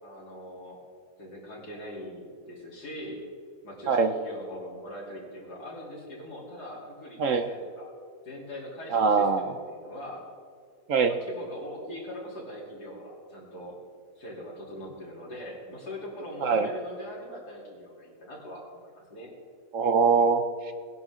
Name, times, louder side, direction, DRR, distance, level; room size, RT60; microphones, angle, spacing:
voice 1, 0.0-0.8 1.2-3.2 3.6-7.9 8.2-10.3 11.0-13.8 14.2-19.3, equal, 75° left, -5 dB, 4.0 m, -41 dB
voice 2, 8.9-9.5 10.9-11.1 16.4-16.7 19.7-20.7, right 5 dB, 60° right, 8 dB, 0.9 m, -23 dB
20.0 x 10.5 x 3.7 m, 2.2 s
omnidirectional pair, 1.7 m